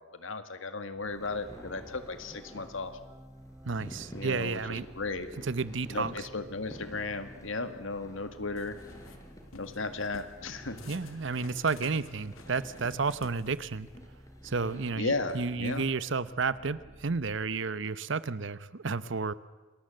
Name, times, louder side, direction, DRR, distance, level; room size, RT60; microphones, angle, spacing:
voice 1, 0.0-3.0 4.1-5.3 5.9-8.8 9.6-10.8 15.0-15.8, left 3 dB, 70° left, 9 dB, 2.0 m, -35 dB
sound 1, 0.9-17.4, equal, 15° right, 2.2 m, -53 dB
sound 2, 1.1-15.5, equal, 15° left, 4.4 m, -51 dB
voice 2, 3.6-4.8 5.4-6.2 10.9-13.9 14.4-19.3, right 4 dB, 60° right, 16 dB, 0.9 m, -32 dB
sound 3, 8.6-9.2 9.5-10.4 10.8-14.0, left 3 dB, 85° left, 2.0 m, -52 dB
29.0 x 20.0 x 7.7 m, 1.3 s
head